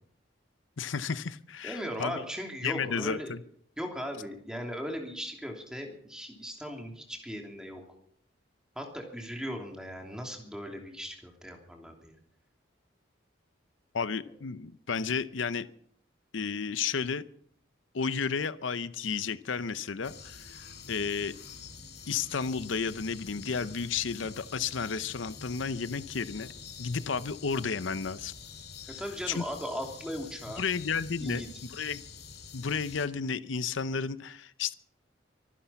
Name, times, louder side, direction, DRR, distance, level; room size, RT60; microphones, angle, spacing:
voice 1, 0.8-2.2 2.6-3.4 13.9-15.7 16.3-17.2 17.9-21.3 22.1-26.5 26.8-28.3 29.3-29.5 30.6-31.4 31.7-32.0 32.5-34.7, left 5 dB, 85° left, 14 dB, 0.7 m, -32 dB
voice 2, 1.6-3.3 3.8-7.8 8.7-12.2 29.0-30.6 31.2-31.5, equal, 5° right, 2 dB, 2.9 m, -38 dB
sound 1, 20.0-33.1, left 5 dB, 55° left, 2.2 m, -47 dB
24.5 x 10.0 x 5.8 m, 0.65 s
head